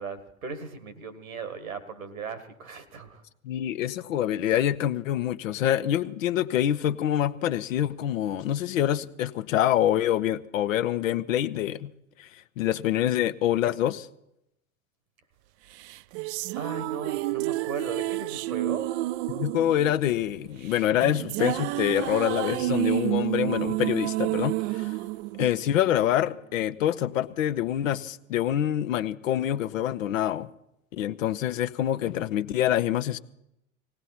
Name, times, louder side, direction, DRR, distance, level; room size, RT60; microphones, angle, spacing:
voice 1, 0.0-3.2 16.5-18.9, right 4 dB, 80° right, 1.9 m, -37 dB
voice 2, 3.4-11.9 12.2-14.1 19.3-24.9 25.4-30.5 30.9-33.2, left 11 dB, 70° left, 0.8 m, -26 dB
sound 1, 15.8-26.2, right 18 dB, 55° right, 0.5 m, -30 dB
19.5 x 17.5 x 4.3 m
figure-of-eight pair, 70°, 41 cm